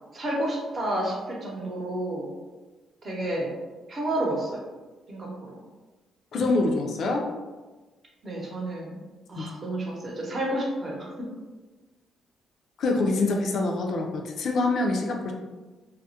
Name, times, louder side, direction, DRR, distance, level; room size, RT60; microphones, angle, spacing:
voice 1, 0.1-2.3 3.0-3.5 3.9-4.6 5.1-5.6 8.2-9.0 9.3-11.3, right 1 dB, 40° right, -2 dB, 0.7 m, -30 dB
voice 2, 6.3-7.3 9.4-9.5 12.8-15.3, left 2 dB, 65° left, 2 dB, 0.3 m, -25 dB
2.3 x 2.0 x 2.7 m, 1.2 s
cardioid pair, 90°, 0 cm